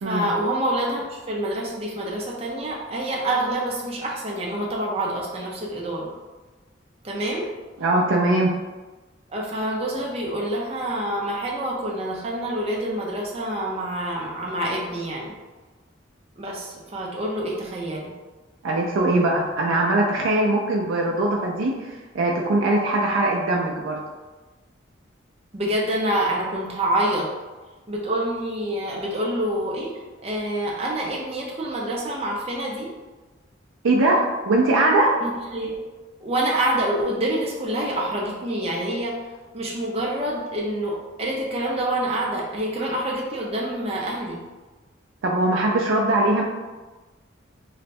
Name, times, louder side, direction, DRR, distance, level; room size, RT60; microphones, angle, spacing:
voice 1, 0.0-6.1 7.0-7.5 9.3-15.3 16.4-18.1 25.5-27.3 27.9-29.9 30.2-32.9 35.2-35.8 36.2-39.2 39.5-44.4, right 1 dB, 30° right, -2 dB, 0.6 m, -27 dB
voice 2, 7.8-8.5 18.6-24.0 33.8-35.1 45.2-46.4, right 2 dB, 85° right, -1 dB, 0.4 m, -21 dB
3.2 x 2.1 x 4.2 m, 1.2 s
head